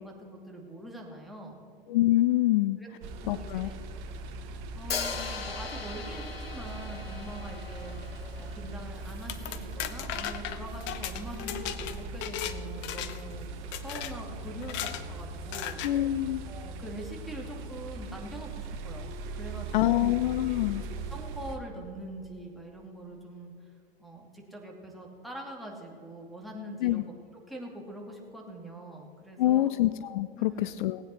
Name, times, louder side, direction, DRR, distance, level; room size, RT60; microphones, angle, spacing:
voice 1, 0.0-1.6 2.8-2.9 3.2-3.8 4.7-7.9 8.4-13.5 13.8-15.8 16.5-19.1 19.3-20.6 21.1-23.7 24.0-27.1 27.5-29.7 30.4-30.7, right 1 dB, ahead, 0 dB, 2.5 m, -43 dB
voice 2, 1.9-2.8 3.3-3.7 15.8-16.4 19.7-20.8 26.8-27.0 29.4-31.0, left 15 dB, 60° left, 15 dB, 0.5 m, -25 dB
sound 1, 3.0-21.6, right 2 dB, 50° right, 1.3 m, -40 dB
Hi-hat, 4.9-8.9, left 5 dB, 85° left, 1.2 m, -38 dB
sound 2, 9.1-12.6 12.8-13.3 13.7-14.1 14.6-15.0 15.5-15.9, left 11 dB, 40° left, 0.9 m, -36 dB
18.5 x 9.1 x 4.4 m, 2.6 s
hypercardioid pair, 105°, 29 cm